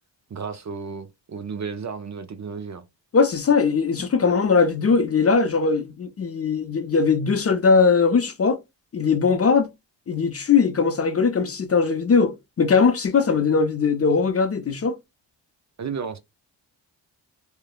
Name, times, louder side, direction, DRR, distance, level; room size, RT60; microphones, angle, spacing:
voice 1, 0.3-2.8 4.2-4.4 15.8-16.2, right 5 dB, 40° right, 0.5 m, -33 dB
voice 2, 3.1-8.6 8.9-9.7 10.1-15.0, left 5 dB, 30° left, 0.5 m, -20 dB
3.0 x 2.0 x 2.2 m
cardioid pair, 60°, 47 cm